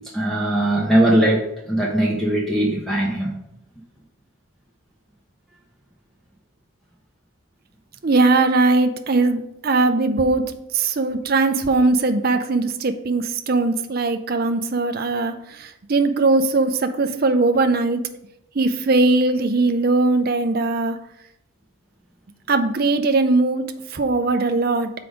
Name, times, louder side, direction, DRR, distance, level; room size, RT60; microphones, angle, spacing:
voice 1, 0.1-3.3, right 1 dB, ahead, -3 dB, 0.8 m, -20 dB
voice 2, 8.0-10.5 10.7-18.0 18.5-21.0 22.5-24.9, right 3 dB, 45° right, 8 dB, 0.5 m, -20 dB
6.0 x 4.8 x 5.0 m, 0.82 s
head